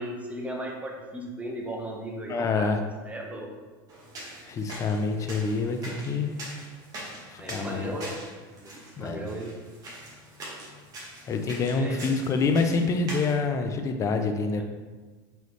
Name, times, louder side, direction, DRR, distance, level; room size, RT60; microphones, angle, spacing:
voice 1, 0.0-2.7 3.0-3.5 7.4-8.2 8.6-9.5 11.7-12.0, right 1 dB, 10° right, 0 dB, 0.7 m, -36 dB
voice 2, 2.3-2.8 4.5-6.4 7.3-7.9 9.0-9.3 11.3-14.6, left 4 dB, 25° left, 6 dB, 0.4 m, -26 dB
sound 1, 3.9-13.3, right 1 dB, 35° right, 1.0 m, -43 dB
4.0 x 3.1 x 3.1 m, 1.3 s
supercardioid pair, 120°, 11 cm